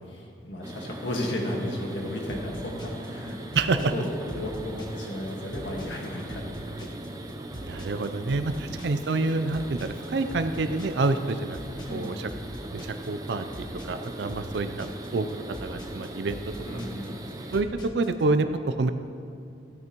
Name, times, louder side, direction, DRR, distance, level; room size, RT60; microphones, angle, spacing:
voice 1, 0.1-3.4 3.9-6.9 8.5-8.7 11.8-12.2 14.3-14.4 16.6-17.2, left 1 dB, 90° left, -1 dB, 1.7 m, -34 dB
sound 1, 0.6-17.6, right 1 dB, 20° right, 0.6 m, -41 dB
sound 2, 2.3-18.2, equal, 25° left, 1.1 m, -42 dB
voice 2, 7.6-11.6 11.9-12.3 12.7-16.4 17.5-17.7 17.9-18.9, right 3 dB, 75° right, 9 dB, 0.4 m, -27 dB
16.5 x 9.1 x 3.0 m, 2.4 s
head